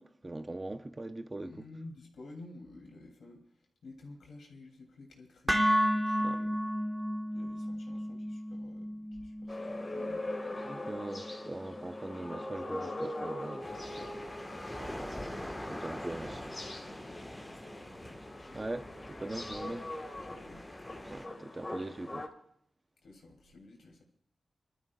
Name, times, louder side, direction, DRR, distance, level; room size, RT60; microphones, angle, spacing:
voice 1, 0.0-1.6 6.2-6.4 10.7-14.1 14.8-15.1 15.7-16.5 18.5-19.8 21.1-22.3, right 2 dB, 30° right, 0.9 m, -41 dB
voice 2, 1.4-6.6 7.3-10.3 15.9-18.6 19.5-20.6 23.0-24.0, left 2 dB, 85° left, 3.1 m, -53 dB
sound 1, 5.5-13.6, equal, 5° right, 1.3 m, -34 dB
sound 2, 9.5-22.3, left 1 dB, 30° left, 2.0 m, -42 dB
sound 3, 13.6-21.3, left 1 dB, 10° left, 1.5 m, -44 dB
28.0 x 12.5 x 2.4 m
cardioid pair, 65°, 0 cm